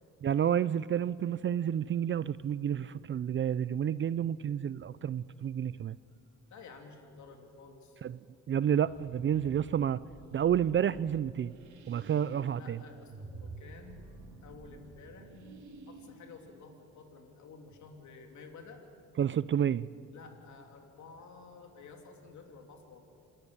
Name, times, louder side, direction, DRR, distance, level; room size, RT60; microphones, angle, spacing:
voice 1, 0.2-6.0 8.0-8.2 8.5-10.0 10.3-11.5 11.9-12.8 19.2-19.9, right 9 dB, 40° right, 17 dB, 0.5 m, -30 dB
voice 2, 6.5-8.0 12.6-14.1 14.4-15.3 15.8-18.8 20.1-23.0, left 4 dB, 70° left, 3 dB, 3.2 m, -52 dB
sound 1, 8.8-17.4, right 3 dB, 70° right, 2.9 m, -51 dB
27.0 x 13.5 x 9.8 m, 2.4 s
cardioid pair, 90°, 30 cm